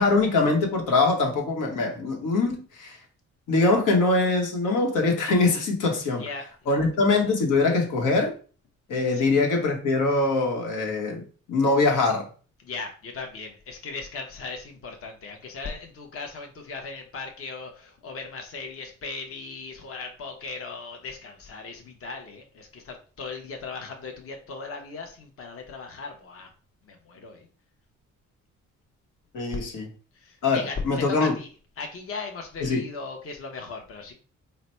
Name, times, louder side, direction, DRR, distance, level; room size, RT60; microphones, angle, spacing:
voice 1, 0.0-3.0 3.5-6.2 6.7-8.3 8.9-11.2 11.5-12.3 29.3-29.9 30.4-31.3 32.6-32.8, left 3 dB, 85° left, 1.2 m, -23 dB
voice 2, 6.2-6.8 9.1-9.4 12.6-26.5 26.9-27.5 30.1-31.5 31.8-34.1, left 4 dB, 50° left, 0.9 m, -38 dB
4.0 x 2.2 x 4.3 m
cardioid pair, 90°, 30 cm